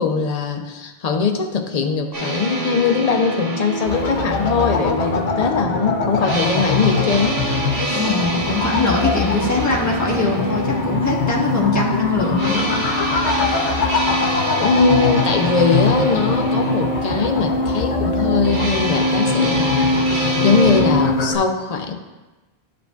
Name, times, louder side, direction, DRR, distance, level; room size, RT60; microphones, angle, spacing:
voice 1, 0.0-7.4 7.9-8.2 14.4-21.9, left 5 dB, 45° left, 5 dB, 0.6 m, -21 dB
sound 1, 2.1-20.8, right 2 dB, 60° right, 1.2 m, -27 dB
sound 2, 3.9-21.4, left 3 dB, 90° left, 1.0 m, -22 dB
voice 2, 7.9-12.8, left 3 dB, 15° left, -5 dB, 1.3 m, -22 dB
11.0 x 5.0 x 2.3 m, 1.2 s
omnidirectional pair, 1.1 m